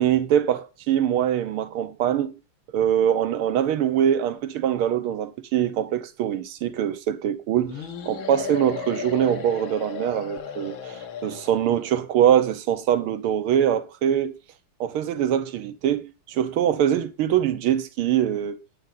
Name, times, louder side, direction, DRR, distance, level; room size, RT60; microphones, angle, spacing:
voice 1, 0.0-2.3 2.7-14.3 14.8-18.6, right 10 dB, 80° right, 1.8 m, -23 dB
sound 1, 7.7-11.9, left 7 dB, 65° left, 1.9 m, -35 dB
9.3 x 9.2 x 3.9 m
omnidirectional pair, 2.4 m